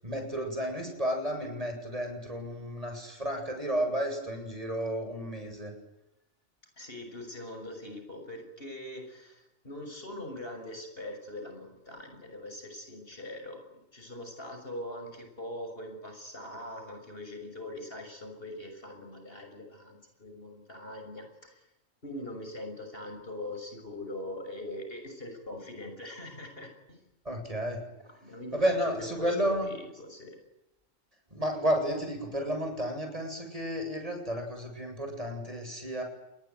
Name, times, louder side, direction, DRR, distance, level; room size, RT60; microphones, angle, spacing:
voice 1, 0.0-5.7 27.2-27.8 28.5-29.7 31.3-36.0, equal, 30° right, 4 dB, 8.2 m, -32 dB
voice 2, 6.8-21.5 22.0-27.0 28.2-30.3, left 1 dB, 50° left, 5 dB, 6.6 m, -42 dB
29.5 x 21.5 x 9.4 m, 0.91 s
omnidirectional pair, 1.3 m